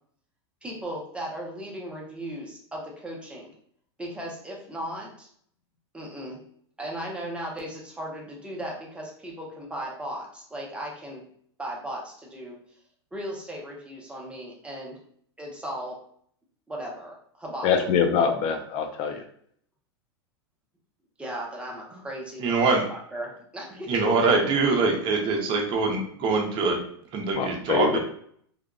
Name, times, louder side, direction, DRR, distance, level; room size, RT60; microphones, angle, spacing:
voice 1, 0.6-3.5 4.0-5.3 5.9-6.4 6.8-11.2 11.6-12.6 13.1-15.0 15.4-16.0 16.7-17.9 21.2-24.0, right 1 dB, 5° right, -2 dB, 0.8 m, -36 dB
voice 2, 17.6-19.2 27.3-28.0, left 6 dB, 45° left, 5 dB, 0.6 m, -24 dB
voice 3, 22.4-22.8 23.9-26.8 27.1-28.0, right 3 dB, 35° right, 1 dB, 0.8 m, -23 dB
3.5 x 2.3 x 2.4 m, 0.63 s
hypercardioid pair, 125°, 14 cm